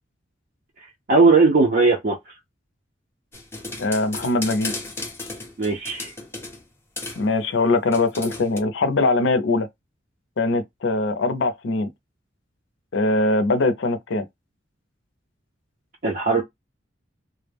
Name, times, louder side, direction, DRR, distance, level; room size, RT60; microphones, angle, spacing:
voice 1, 1.1-2.2 5.6-6.1 16.0-16.4, right 3 dB, 50° right, 0.5 m, -18 dB
sound 1, 3.3-6.6 7.0-7.3 7.9-8.6, left 3 dB, 15° left, 0.6 m, -34 dB
voice 2, 3.8-4.7 7.2-9.7 10.4-11.9 12.9-14.3, left 2 dB, 75° left, 0.5 m, -22 dB
2.2 x 2.0 x 3.3 m
head